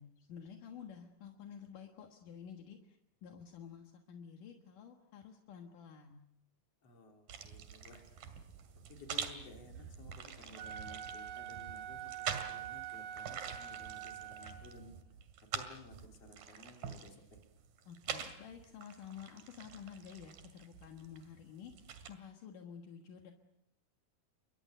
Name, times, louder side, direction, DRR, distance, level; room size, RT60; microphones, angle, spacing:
voice 1, 0.0-6.2 17.9-23.3, left 7 dB, 70° left, 3 dB, 3.1 m, -51 dB
voice 2, 6.8-8.4 8.9-15.0 15.5-17.4, left 2 dB, 45° left, 2 dB, 4.2 m, -56 dB
sound 1, 7.3-22.1, right 7 dB, 85° right, 3.9 m, -46 dB
Wind instrument woodwind instrument, 10.4-14.9, right 10 dB, 70° right, 3.3 m, -45 dB
30.0 x 23.5 x 6.8 m, 0.82 s
omnidirectional pair, 3.9 m